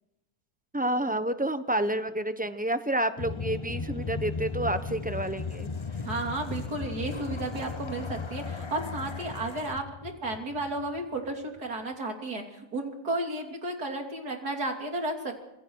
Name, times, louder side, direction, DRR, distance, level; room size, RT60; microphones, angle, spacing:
voice 1, 0.7-5.7, right 1 dB, 5° right, 10 dB, 0.8 m, -29 dB
sound 1, 3.2-11.3, left 4 dB, 30° left, 0.5 m, -36 dB
voice 2, 6.1-15.4, right 2 dB, 75° right, 3 dB, 3.5 m, -33 dB
27.0 x 21.0 x 4.7 m, 0.89 s
omnidirectional pair, 1.7 m